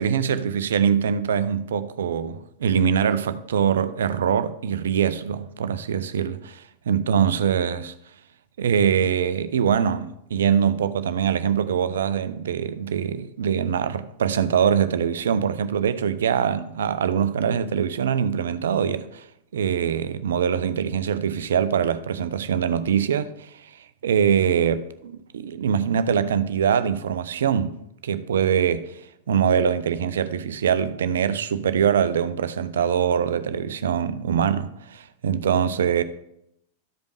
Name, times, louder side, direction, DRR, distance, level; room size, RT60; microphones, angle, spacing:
voice 1, 0.0-7.9 8.6-19.2 19.5-27.7 28.0-29.0 29.3-36.0, right 8 dB, 65° right, 0.5 m, -23 dB
13.0 x 5.2 x 4.7 m
figure-of-eight pair, 90°, 0 cm